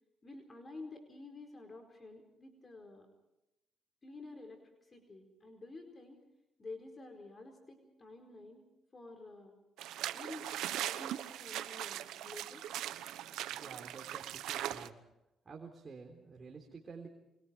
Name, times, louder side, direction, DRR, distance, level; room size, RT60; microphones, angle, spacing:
voice 1, 0.2-3.1 4.0-6.2 6.6-8.7 8.9-9.6 10.1-12.6, left 2 dB, 30° left, 4 dB, 4.6 m, -50 dB
sound 1, 9.8-14.9, right 12 dB, 90° right, 1.1 m, -40 dB
voice 2, 13.6-15.0 15.5-17.1, right 4 dB, 35° right, 2 dB, 3.8 m, -50 dB
28.5 x 25.0 x 4.6 m, 0.89 s
cardioid pair, 90°, 0 cm